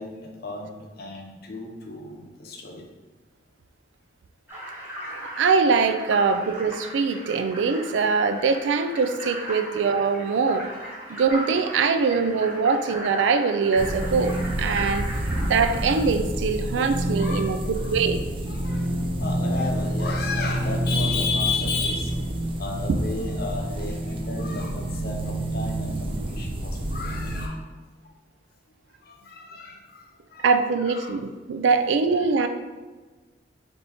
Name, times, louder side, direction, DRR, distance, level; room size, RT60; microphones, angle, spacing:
voice 1, 0.0-2.9 6.1-6.4 10.4-10.9 11.9-12.1 14.7-15.5 16.9-18.0 18.5-22.3 22.6-27.7 28.0-28.1 28.7-30.0 30.3-30.5 30.8-31.2 32.2-32.5, left 4 dB, 60° left, 1 dB, 0.7 m, -34 dB
sound 1, 4.5-15.9, right 1 dB, 10° right, 0.9 m, -37 dB
voice 2, 5.1-10.7 11.1-15.1 15.4-18.2 30.4-32.5, right 5 dB, 90° right, 9 dB, 0.3 m, -23 dB
sound 2, 13.8-27.5, right 1 dB, 30° right, 0.5 m, -28 dB
3.5 x 2.8 x 4.0 m, 1.3 s
head